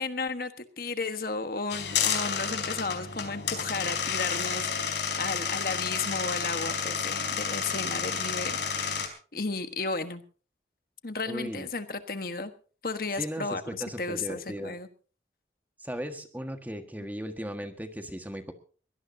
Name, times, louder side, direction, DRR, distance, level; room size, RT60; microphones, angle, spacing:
voice 1, 0.0-10.2 11.0-12.5 12.8-14.9, left 3 dB, 50° left, 9 dB, 1.3 m, -34 dB
sound 1, 1.7-9.1, left 6 dB, 80° left, 4.3 m, -30 dB
voice 2, 11.3-11.7 13.2-14.8 15.8-18.5, equal, 10° right, 7 dB, 1.6 m, -37 dB
23.0 x 17.5 x 2.8 m, 0.40 s
head